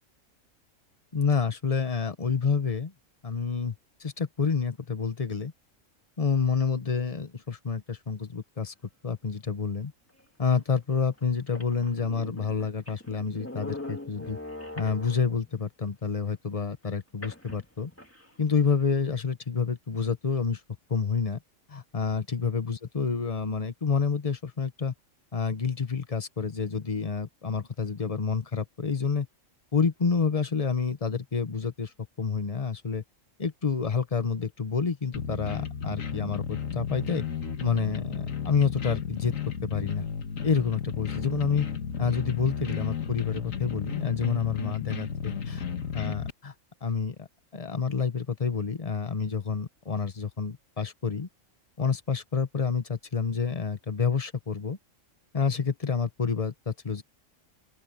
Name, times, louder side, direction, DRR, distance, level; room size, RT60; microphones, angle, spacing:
voice 1, 1.1-2.9 3.2-5.5 6.2-8.7 9.0-9.9 10.4-14.4 14.8-17.9 18.4-20.6 20.9-21.4 21.7-24.9 25.3-29.3 29.7-31.9 32.2-33.0 33.4-37.2 37.6-39.3 39.6-40.0 40.4-41.7 42.0-45.6 45.9-46.5 46.8-47.3 47.5-51.3 51.8-54.8 55.3-57.0, left 5 dB, 30° left, 1.1 m, -28 dB
sound 1, 11.2-11.3 11.5-15.5 17.2-18.3, left 2 dB, 10° left, 2.8 m, -42 dB
sound 2, 35.1-46.3, left 7 dB, 90° left, 1.9 m, -33 dB
open air
omnidirectional pair, 1.3 m